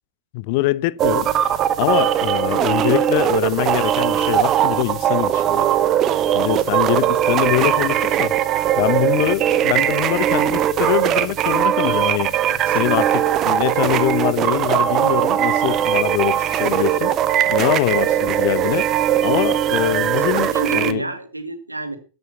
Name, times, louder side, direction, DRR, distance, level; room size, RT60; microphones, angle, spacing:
voice 1, 0.3-1.3 1.8-5.7 6.3-8.4 8.8-12.4 12.7-17.2 17.5-21.0, left 18 dB, 45° left, 0.5 m, -23 dB
sound 1, 1.0-20.9, right 11 dB, 30° right, 0.9 m, -19 dB
voice 2, 12.5-13.1 20.3-22.0, right 1 dB, 85° right, 1.9 m, -30 dB
13.5 x 7.7 x 5.5 m
figure-of-eight pair, 90°, 0 cm